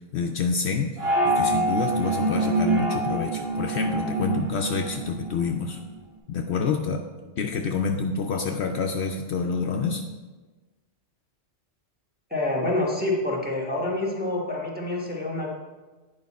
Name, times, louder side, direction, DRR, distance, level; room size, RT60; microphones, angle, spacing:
voice 1, 0.1-5.8 6.3-7.1 7.4-10.0, left 5 dB, 65° left, 3 dB, 0.8 m, -28 dB
sound 1, 1.0-5.6, right 1 dB, 55° right, 1.5 m, -25 dB
voice 2, 12.3-15.5, left 2 dB, 10° right, -2 dB, 1.2 m, -27 dB
9.2 x 5.1 x 4.1 m, 1.3 s
omnidirectional pair, 1.3 m